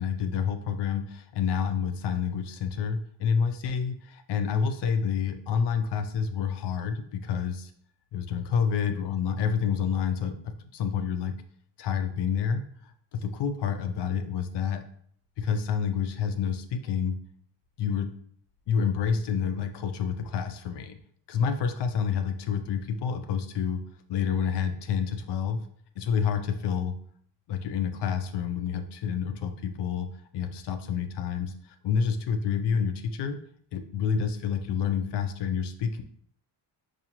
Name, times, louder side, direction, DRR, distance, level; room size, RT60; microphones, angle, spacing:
voice 1, 0.0-7.7 8.1-11.3 11.8-12.6 13.1-14.8 15.4-17.2 17.8-18.1 18.7-21.0 21.3-23.8 24.1-25.6 26.0-26.9 27.5-30.1 30.3-31.5 31.8-33.4 33.7-36.0, left 7 dB, 60° left, 8 dB, 0.5 m, -28 dB
4.9 x 2.4 x 2.9 m, 0.63 s
cardioid pair, 140°, 48 cm